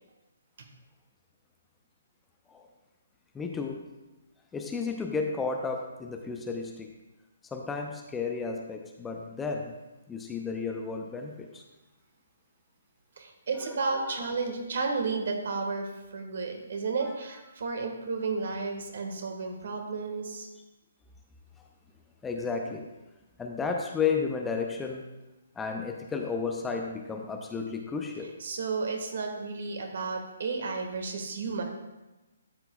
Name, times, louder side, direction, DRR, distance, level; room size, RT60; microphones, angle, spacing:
voice 1, 3.3-3.8 4.5-6.9 7.4-9.7 10.1-11.6 13.6-14.3 17.1-17.2 22.2-22.9 23.4-25.1 25.6-28.4, left 5 dB, 10° left, 2 dB, 0.6 m, -33 dB
voice 2, 13.2-20.5 28.4-31.6, right 4 dB, 55° right, 3 dB, 1.5 m, -32 dB
12.0 x 7.8 x 2.3 m, 1.1 s
figure-of-eight pair, 135°, 0 cm